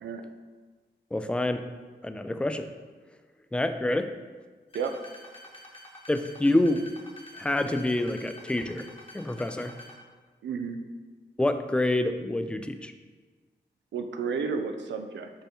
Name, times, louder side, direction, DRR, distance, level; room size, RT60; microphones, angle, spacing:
voice 1, 1.1-1.7 2.0-2.7 3.5-4.2 6.1-6.9 7.4-8.9 9.1-9.7 11.4-12.9, left 1 dB, 5° left, 8 dB, 0.3 m, -27 dB
sound 1, 4.7-9.9, left 1 dB, 30° left, 1.1 m, -47 dB
voice 2, 10.4-10.8 13.9-15.3, right 5 dB, 85° right, 6 dB, 0.4 m, -32 dB
5.4 x 2.1 x 4.4 m, 1.4 s
cardioid pair, 50°, 18 cm